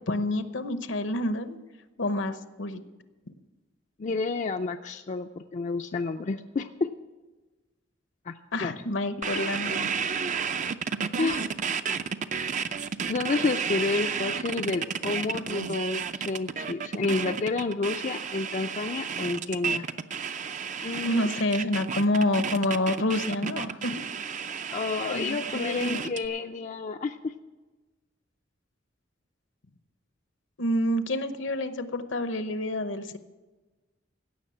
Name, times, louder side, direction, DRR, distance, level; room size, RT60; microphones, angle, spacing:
voice 1, 0.0-1.6 2.0-2.8 8.5-9.9 21.0-24.1 25.1-26.0 30.6-33.2, left 1 dB, 70° left, 10 dB, 0.9 m, -28 dB
voice 2, 4.0-6.7 8.2-8.3 8.6-8.7 11.2-11.5 13.1-19.8 20.8-21.3 24.7-27.3, left 3 dB, 40° left, 6 dB, 0.4 m, -30 dB
sound 1, 9.2-26.3, right 6 dB, 40° right, 0.5 m, -32 dB
16.5 x 6.3 x 8.5 m, 1.2 s
head